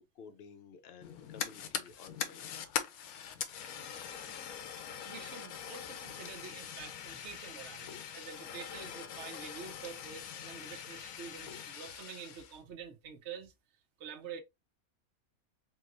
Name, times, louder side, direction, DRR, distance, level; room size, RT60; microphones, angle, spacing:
voice 1, 0.0-2.6, left 6 dB, 55° left, 0.8 m, -53 dB
Fire, 1.0-12.6, left 8 dB, 90° left, 1.1 m, -42 dB
voice 2, 5.0-13.5 14.0-14.4, right 7 dB, 60° right, 0.9 m, -47 dB
4.6 x 3.0 x 2.4 m
omnidirectional pair, 1.5 m